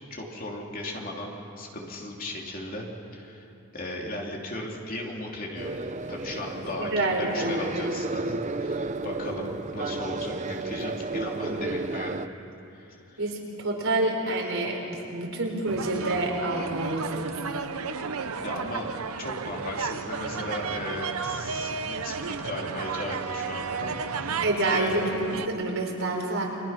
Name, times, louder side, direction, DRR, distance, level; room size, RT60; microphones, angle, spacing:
voice 1, 0.1-2.9 3.1-5.8 6.1-12.2 12.7-13.2 18.4-18.9 19.2-24.4 24.7-24.9, left 1 dB, 40° left, -1 dB, 3.1 m, -36 dB
sound 1, 5.6-12.3, right 2 dB, 35° right, 0.6 m, -32 dB
voice 2, 6.8-7.5 13.2-17.4 24.4-26.5, right 2 dB, 65° right, 0 dB, 4.3 m, -28 dB
sound 2, 15.7-25.5, right 5 dB, 85° right, 1.0 m, -33 dB
30.0 x 23.0 x 5.9 m, 2.8 s
head